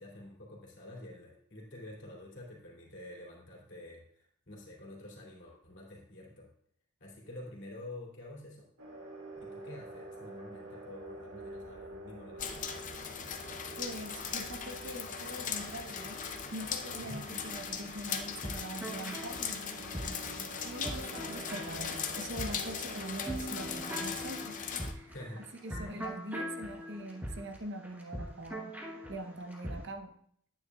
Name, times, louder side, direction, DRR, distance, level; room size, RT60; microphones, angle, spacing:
voice 1, 0.0-6.5 7.0-8.7 9.3-12.9 17.0-17.4 25.1-25.5 25.8-26.0, left 1 dB, 55° left, -3 dB, 2.7 m, -48 dB
sound 1, 8.8-23.8, right 1 dB, 85° right, 2.0 m, -48 dB
sound 2, 12.4-24.9, left 7 dB, 35° left, 0.6 m, -39 dB
voice 2, 13.8-16.2 16.5-19.6 20.6-25.1 25.6-28.7 29.1-30.2, right 1 dB, 50° right, 5 dB, 0.8 m, -43 dB
sound 3, 18.2-29.8, equal, 10° right, 1.0 m, -42 dB
10.0 x 9.1 x 2.3 m, 0.64 s
head